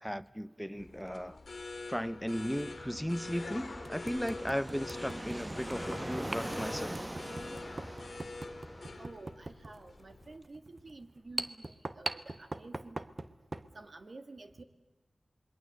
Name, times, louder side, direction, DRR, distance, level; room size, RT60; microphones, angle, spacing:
voice 1, 0.0-1.4 1.9-7.1, equal, ahead, 0.9 m, -36 dB
sound 1, 0.8-10.4, left 3 dB, 70° left, 2.0 m, -46 dB
sound 2, 0.9-1.1 2.5-2.6 3.2-3.3 3.8-13.7, right 2 dB, 45° right, 1.2 m, -42 dB
Fixed-wing aircraft airplane, 2.2-9.0, right 1 dB, 20° right, 1.2 m, -43 dB
voice 2, 9.0-13.0 13.7-14.6, right 3 dB, 65° right, 1.9 m, -50 dB
27.5 x 22.0 x 7.9 m
cardioid pair, 45°, 0 cm